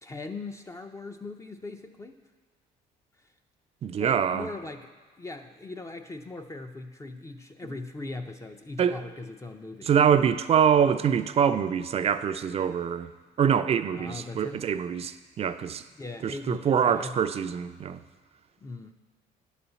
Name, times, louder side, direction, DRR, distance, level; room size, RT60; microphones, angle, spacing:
voice 1, 0.0-2.2 4.0-9.9 13.9-14.6 16.0-17.2 18.6-18.9, left 3 dB, 20° left, 5 dB, 0.5 m, -40 dB
voice 2, 3.8-4.5 8.8-9.0 9.9-13.1 13.4-15.8 16.2-18.0, right 8 dB, 35° right, 11 dB, 0.4 m, -24 dB
10.0 x 4.2 x 6.8 m, 1.4 s
cardioid pair, 110°, 17 cm